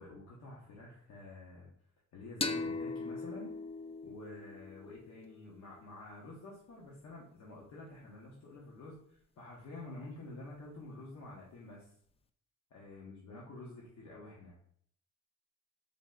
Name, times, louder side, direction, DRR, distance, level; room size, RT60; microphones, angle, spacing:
voice 1, 0.0-1.7 2.1-3.5 4.0-11.9 12.7-14.6, left 2 dB, 65° left, -4 dB, 1.2 m, -49 dB
sound 1, 2.4-5.8, left 3 dB, 20° left, 0.3 m, -40 dB
4.0 x 3.2 x 3.8 m, 0.64 s
cardioid pair, 90°, 30 cm